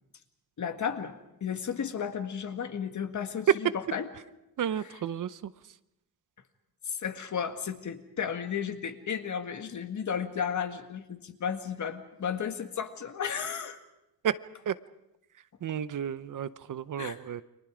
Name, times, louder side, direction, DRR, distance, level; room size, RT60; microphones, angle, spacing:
voice 1, 0.6-4.1 6.9-13.8 17.0-17.2, left 7 dB, 55° left, 7 dB, 1.9 m, -34 dB
voice 2, 4.6-5.5 14.2-14.4 14.7-14.8 15.6-17.4, right 9 dB, 60° right, 14 dB, 0.8 m, -32 dB
30.0 x 24.0 x 5.0 m, 0.90 s
wide cardioid pair, 140°, 36 cm